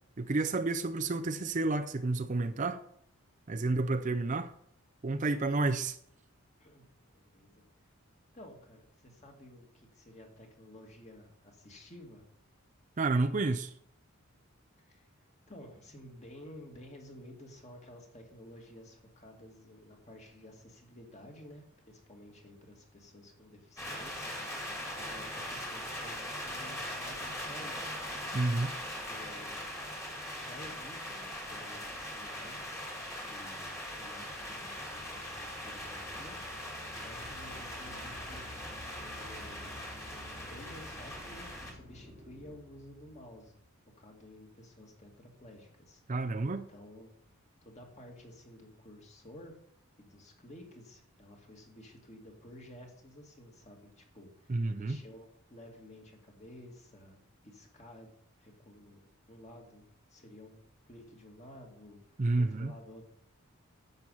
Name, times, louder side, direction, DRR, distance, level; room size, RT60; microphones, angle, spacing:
voice 1, 0.2-2.8 3.5-4.5 5.0-6.0 13.0-13.7 28.3-28.7 46.1-46.7 54.5-55.0 62.2-62.7, right 3 dB, 35° right, 8 dB, 0.5 m, -30 dB
voice 2, 7.1-7.6 8.3-12.3 14.8-15.1 15.5-24.4 24.8-28.0 29.1-29.7 30.4-32.8 33.2-36.4 36.9-38.5 39.1-39.8 40.4-43.6 44.0-46.0 46.5-47.1 47.6-49.5 50.0-57.2 57.4-58.1 58.4-59.0 59.3-59.8 60.1-60.6 60.9-63.0, left 1 dB, 30° left, 1 dB, 2.3 m, -52 dB
sound 1, 23.8-41.7, left 1 dB, 15° left, 2.2 m, -41 dB
sound 2, 33.7-43.7, left 2 dB, 65° left, 2.3 m, -54 dB
sound 3, 37.1-42.6, right 1 dB, 20° right, 1.1 m, -53 dB
10.5 x 7.9 x 5.6 m, 0.69 s
head